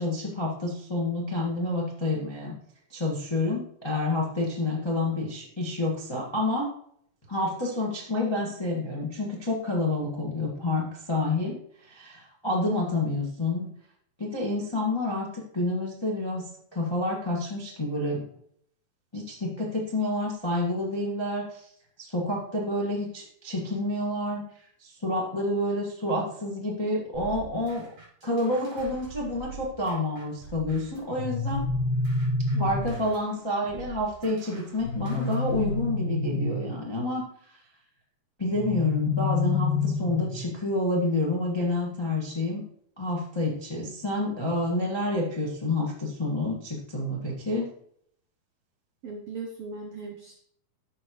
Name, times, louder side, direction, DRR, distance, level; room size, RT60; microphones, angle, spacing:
voice 1, 0.0-2.5 2.9-6.7 7.3-11.6 11.9-13.7 14.2-16.4 16.7-18.2 19.1-21.7 22.0-24.4 24.8-27.8 28.2-31.6 32.6-37.2 38.4-42.6 43.0-47.7, left 2 dB, 30° left, -4 dB, 0.5 m, -28 dB
voice 2, 12.5-12.8 32.5-32.9 49.0-50.3, right 4 dB, 80° right, 2 dB, 1.3 m, -39 dB
sound 1, 27.1-31.1 31.5-35.9, right 5 dB, 45° right, 4.1 m, -44 dB
sound 2, 31.1-33.1 34.8-36.8 38.5-40.5, left 3 dB, 70° left, 2.3 m, -28 dB
13.5 x 4.7 x 3.1 m, 0.65 s
omnidirectional pair, 3.8 m